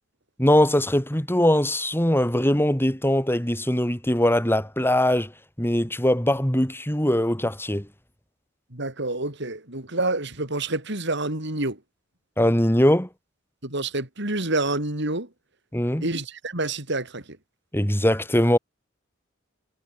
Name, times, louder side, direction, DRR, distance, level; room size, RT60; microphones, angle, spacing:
voice 1, 0.4-5.3 5.6-7.9 12.4-13.1 15.7-16.1 17.7-18.6, left 1 dB, 10° left, 6.0 m, -21 dB
voice 2, 8.7-11.8 13.6-15.3 16.0-17.4, right 2 dB, 65° right, 6.5 m, -28 dB
head